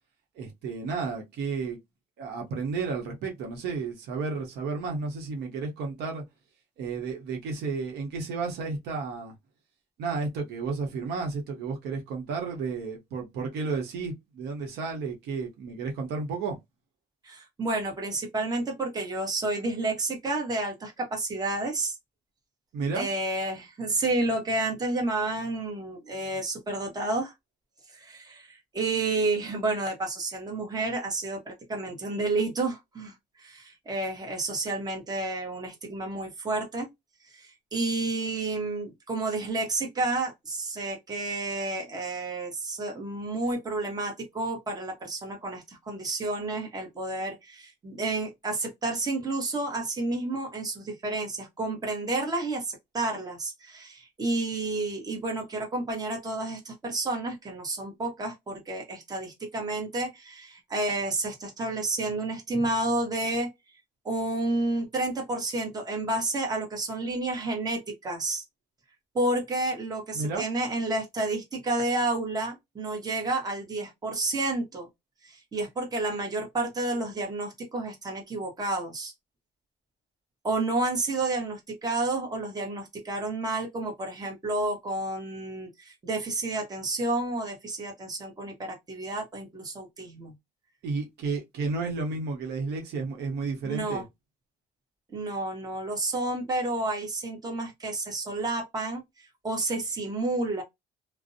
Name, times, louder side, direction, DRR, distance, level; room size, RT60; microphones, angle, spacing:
voice 1, 0.4-1.8 2.2-6.2 6.8-9.4 10.0-16.6 22.7-23.1 70.1-70.4 90.8-94.0, right 4 dB, 80° right, 0.8 m, -32 dB
voice 2, 17.2-21.9 22.9-27.3 27.9-36.9 37.3-63.5 64.0-68.4 69.1-74.9 75.2-79.1 80.4-90.3 93.6-94.0 95.1-100.6, right 2 dB, 25° right, 0.9 m, -30 dB
2.5 x 2.0 x 2.6 m
cardioid pair, 110°, 17 cm